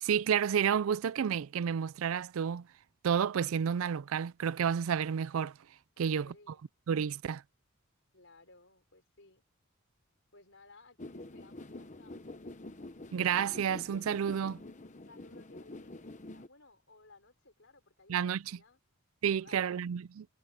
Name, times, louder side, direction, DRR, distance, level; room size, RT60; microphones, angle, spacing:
voice 1, 0.0-2.7 3.0-5.5 6.0-6.3 6.9-7.4 13.1-14.6 18.1-18.6 19.2-20.3, right 8 dB, 75° right, 0.4 m, -30 dB
voice 2, 6.0-6.7 8.1-9.4 10.3-12.6 14.8-18.8 19.4-19.8, left 3 dB, 60° left, 4.5 m, -60 dB
sound 1, 11.0-16.5, left 2 dB, 35° left, 0.9 m, -47 dB
head